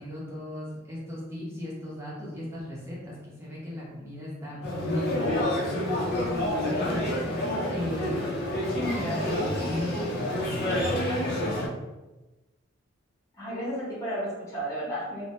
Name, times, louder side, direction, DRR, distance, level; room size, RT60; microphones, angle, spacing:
voice 1, 0.0-7.1 7.7-11.7, left 1 dB, 15° right, -7 dB, 0.6 m, -37 dB
sound 1, 4.6-11.7, left 1 dB, 55° left, 0.5 m, -28 dB
voice 2, 8.7-9.3 13.3-15.3, equal, 15° left, -8 dB, 0.8 m, -32 dB
2.2 x 2.0 x 2.8 m, 1.1 s
head